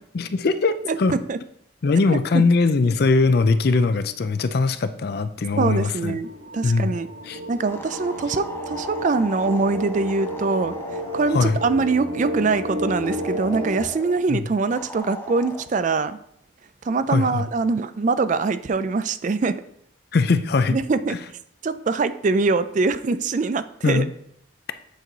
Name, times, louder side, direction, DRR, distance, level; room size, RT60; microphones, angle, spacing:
voice 1, 0.1-1.1 1.8-6.2 6.6-6.9 7.2-7.4 11.3-11.6 14.3-14.4 17.1-17.4 20.1-20.8 23.8-24.1, left 3 dB, 50° left, 11 dB, 0.4 m, -20 dB
voice 2, 0.8-1.4 2.3-2.4 5.5-6.3 6.5-7.1 7.5-16.2 16.8-19.6 20.7-21.2 21.6-24.0, right 4 dB, 40° right, 13 dB, 0.3 m, -23 dB
sound 1, 6.2-13.8, equal, 60° right, 2.6 m, -32 dB
sound 2, 7.7-11.6 13.0-14.2 14.7-15.7, left 1 dB, 10° left, 0.7 m, -38 dB
8.3 x 4.6 x 3.9 m, 0.70 s
head